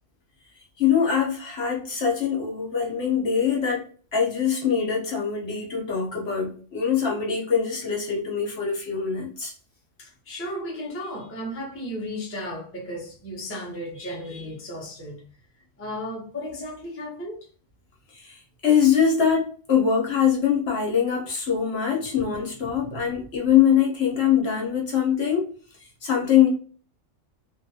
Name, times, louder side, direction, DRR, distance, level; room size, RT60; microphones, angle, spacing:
voice 1, 0.8-9.5 18.2-25.5 26.0-26.5, left 8 dB, 55° left, 1.1 m, -23 dB
voice 2, 10.0-15.2 15.8-17.4 22.6-23.0, equal, 15° left, 0.7 m, -35 dB
2.9 x 2.5 x 2.7 m
omnidirectional pair, 1.4 m